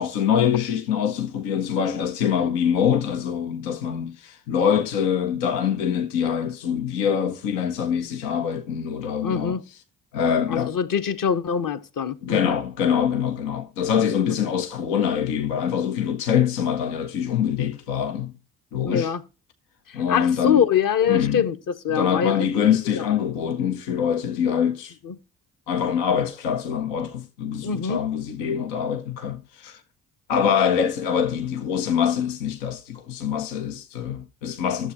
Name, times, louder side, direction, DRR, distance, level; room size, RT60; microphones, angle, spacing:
voice 1, 0.0-9.8 10.1-10.8 12.2-18.3 18.7-19.1 19.9-20.6 21.1-21.4 21.9-25.0 25.7-29.8 30.3-34.9, left 8 dB, 85° left, 0.8 m, -24 dB
voice 2, 9.2-9.6 10.5-12.6 14.3-14.4 18.8-19.2 19.9-22.5 22.9-23.0 25.0-25.1 27.6-28.0, left 7 dB, 50° left, 1.2 m, -24 dB
12.0 x 7.4 x 3.0 m
hypercardioid pair, 45°, 41 cm